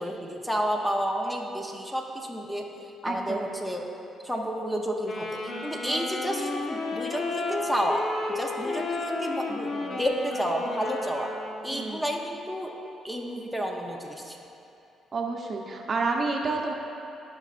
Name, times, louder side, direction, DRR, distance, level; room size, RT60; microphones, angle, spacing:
voice 1, 0.0-2.7 3.0-3.8 4.2-8.0 8.3-11.3 11.6-12.7 13.0-14.4, equal, 5° left, 1 dB, 0.8 m, -30 dB
voice 2, 3.0-3.4 11.7-12.0 15.1-16.7, right 3 dB, 45° right, 1 dB, 0.8 m, -29 dB
Wind instrument woodwind instrument, 5.0-12.0, left 3 dB, 50° left, 0.9 m, -33 dB
14.0 x 5.4 x 2.5 m, 2.8 s
cardioid pair, 90°, 0 cm